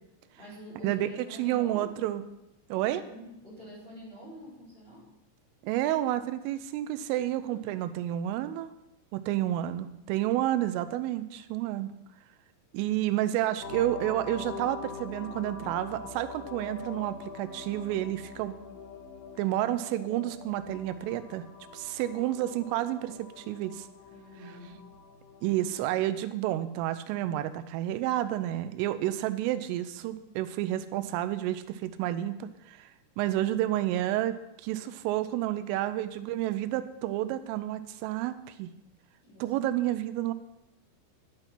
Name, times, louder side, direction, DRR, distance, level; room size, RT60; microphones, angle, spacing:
voice 1, 0.4-2.1 2.7-5.1 7.4-7.7 24.1-24.8 39.2-39.5, equal, 10° left, -8 dB, 5.5 m, -47 dB
voice 2, 1.4-2.2 2.7-3.0 5.6-8.7 9.1-11.9 12.7-18.6 19.4-21.5 21.7-23.9 25.4-32.9 33.2-34.3 34.6-38.7 39.4-40.3, right 13 dB, 90° right, 12 dB, 3.2 m, -30 dB
sound 1, 13.6-26.2, left 4 dB, 80° left, 4.6 m, -44 dB
10.5 x 10.0 x 5.8 m, 0.88 s
omnidirectional pair, 5.7 m